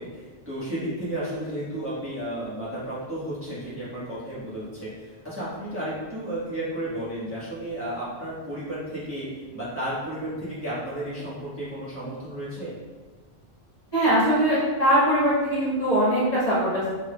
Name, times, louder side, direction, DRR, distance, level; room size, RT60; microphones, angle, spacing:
voice 1, 0.0-12.7, right 1 dB, 10° right, -11 dB, 1.3 m, -33 dB
voice 2, 13.9-16.9, equal, 40° left, -10 dB, 1.6 m, -21 dB
5.7 x 3.5 x 2.3 m, 1.4 s
omnidirectional pair, 1.1 m